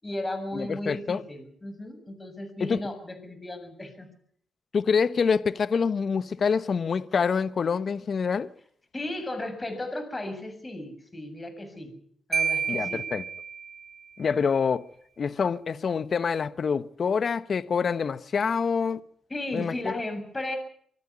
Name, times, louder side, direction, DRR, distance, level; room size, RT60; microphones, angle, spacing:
voice 1, 0.0-4.1 8.9-11.9 12.3-13.0 19.3-20.6, left 1 dB, 25° left, 7.4 m, -35 dB
voice 2, 0.5-1.2 2.6-2.8 4.7-8.5 12.7-13.2 14.2-14.9 15.2-19.0 19.5-20.0, left 6 dB, 55° left, 1.1 m, -26 dB
Marimba xylophone, 12.3-14.1, right 6 dB, 50° right, 2.1 m, -30 dB
25.0 x 14.0 x 9.8 m
cardioid pair, 65°, 0 cm